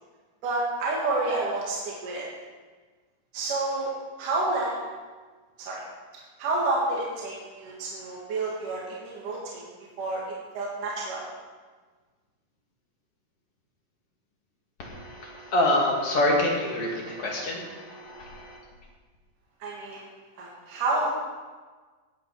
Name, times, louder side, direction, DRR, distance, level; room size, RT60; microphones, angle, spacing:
voice 1, 0.4-2.3 3.3-3.9 4.2-4.8 5.6-5.8 6.1-10.2 10.5-11.3 19.6-20.1 20.4-21.1, right 2 dB, 70° right, -5 dB, 3.4 m, -29 dB
voice 2, 14.8-18.6, left 1 dB, 45° left, -2 dB, 2.8 m, -26 dB
17.5 x 8.6 x 4.7 m, 1.4 s
omnidirectional pair, 3.9 m